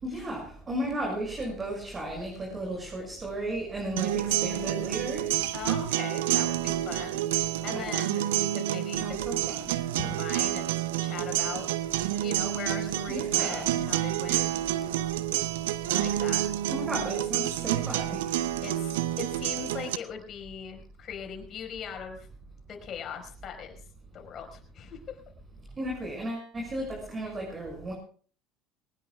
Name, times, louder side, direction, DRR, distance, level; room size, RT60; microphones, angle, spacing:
voice 1, 0.0-5.4 7.7-7.9 9.0-9.7 13.1-13.7 16.7-18.3 25.8-27.9, right 1 dB, 30° right, 0 dB, 6.1 m, -34 dB
sound 1, 4.0-20.0, right 13 dB, 80° right, 0.7 m, -29 dB
voice 2, 5.5-9.2 10.0-11.7 12.1-14.5 15.9-16.4 18.6-22.3 22.7-23.8 24.1-25.2, left 7 dB, 45° left, 4 dB, 4.8 m, -40 dB
22.5 x 19.0 x 2.4 m, 0.44 s
hypercardioid pair, 70°, 0 cm